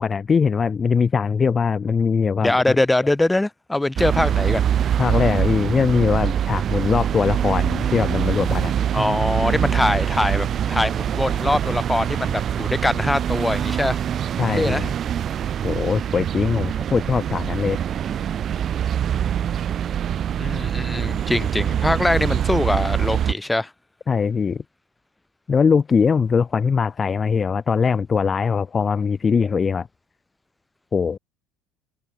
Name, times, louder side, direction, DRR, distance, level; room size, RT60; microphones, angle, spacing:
voice 1, 0.0-2.8 5.0-8.7 14.4-14.9 15.6-17.8 24.1-24.6 25.5-29.9 30.9-31.2, left 6 dB, 30° left, 0.4 m, -21 dB
voice 2, 2.4-4.6 8.9-14.0 14.5-14.9 20.4-23.7, left 2 dB, 10° left, 0.7 m, -22 dB
sound 1, 4.0-23.3, right 9 dB, 45° right, 1.8 m, -24 dB
supercardioid pair, 105°, 0 cm